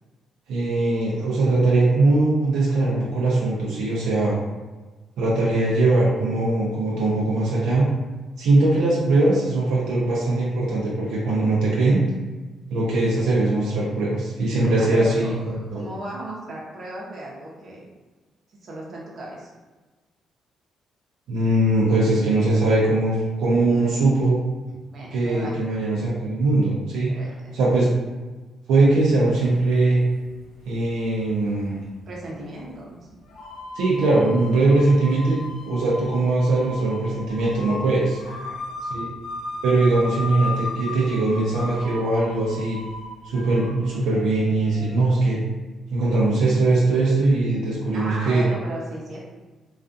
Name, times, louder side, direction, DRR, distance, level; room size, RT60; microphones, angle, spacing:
voice 1, 0.5-4.4 5.2-7.9 8.4-12.0 12.7-15.8 21.3-24.4 25.1-27.1 27.5-27.9 28.7-30.0 30.7-31.8 33.8-35.4 35.6-38.2 38.9-39.1 39.6-42.8 43.2-45.4 45.9-48.4, right 2 dB, 85° right, -5 dB, 0.5 m, -21 dB
voice 2, 14.6-17.8 18.6-19.5 24.9-25.6 27.1-27.5 32.1-33.0 38.2-38.6 47.9-49.2, right 1 dB, 55° right, -3 dB, 0.7 m, -36 dB
sound 1, 29.4-29.6 30.9-31.0 32.0-32.1 33.3-45.0, left 2 dB, 85° left, 0.6 m, -36 dB
2.4 x 2.4 x 2.5 m, 1.2 s
cardioid pair, 90°, 0 cm